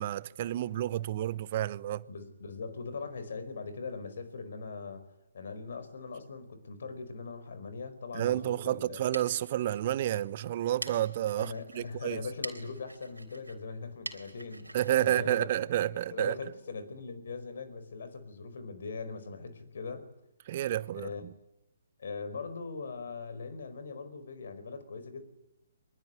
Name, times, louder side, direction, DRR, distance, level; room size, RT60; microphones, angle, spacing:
voice 1, 0.0-2.1 8.1-12.2 14.7-16.4 20.5-21.1, right 12 dB, 40° right, 1.0 m, -30 dB
voice 2, 2.1-5.1 5.3-9.0 11.4-15.5 16.1-20.1 20.9-21.2 22.0-25.2, left 4 dB, 55° left, 4.7 m, -41 dB
sound 1, 8.9-16.3, right 2 dB, 80° right, 3.6 m, -47 dB
24.0 x 21.5 x 9.9 m
figure-of-eight pair, 130°, 0 cm